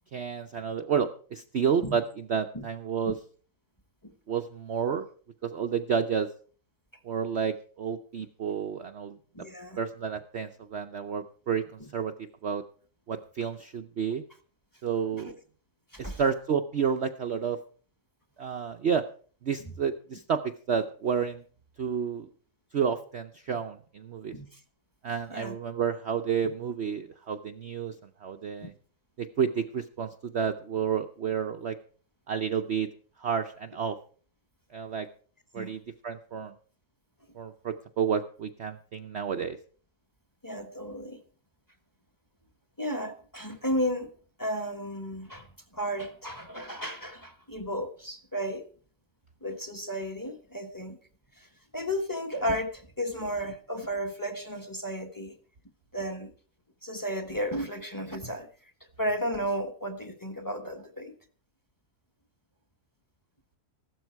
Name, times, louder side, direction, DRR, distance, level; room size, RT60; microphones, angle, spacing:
voice 1, 0.1-3.2 4.3-5.1 5.4-6.3 7.0-9.2 9.8-12.6 13.1-14.2 14.8-15.4 16.0-17.6 18.4-19.1 19.4-21.4 21.8-22.3 22.7-24.3 25.0-27.9 28.2-28.7 29.2-31.8 32.3-32.9 33.2-34.0 34.7-35.1 35.5-36.5 37.3-39.6, right 7 dB, 50° right, 7 dB, 0.9 m, -30 dB
voice 2, 9.3-9.8 11.8-11.9 15.1-15.2 15.9-16.2 19.6-19.7 24.3-24.6 25.3-25.6 28.6-28.7 35.5-35.7 40.4-41.2 42.8-44.1 44.4-45.5 45.7-48.6 49.4-51.0 51.4-55.4 55.9-56.3 56.8-58.7 59.0-61.1, equal, 15° left, 8 dB, 1.4 m, -33 dB
15.5 x 12.5 x 4.6 m, 0.42 s
omnidirectional pair, 1.7 m